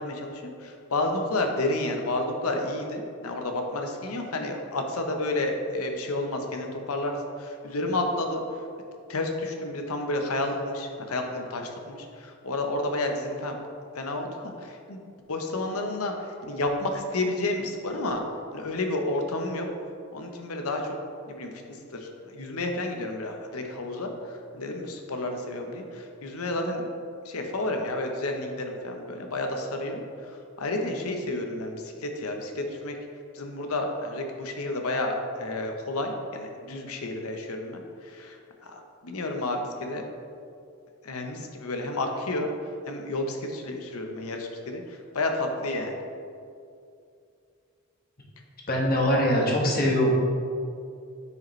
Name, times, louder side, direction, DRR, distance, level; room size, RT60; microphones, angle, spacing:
voice 1, 0.0-8.4 9.1-13.6 13.9-15.0 15.3-18.2 18.5-19.7 20.1-20.9 21.3-21.5 21.9-26.9 27.2-33.0 33.3-38.4 38.6-40.0 41.0-42.5 42.9-46.0, left 2 dB, 85° left, 3 dB, 0.8 m, -31 dB
voice 2, 48.7-50.1, equal, 45° left, -2 dB, 1.2 m, -22 dB
9.5 x 5.1 x 3.2 m, 2.4 s
head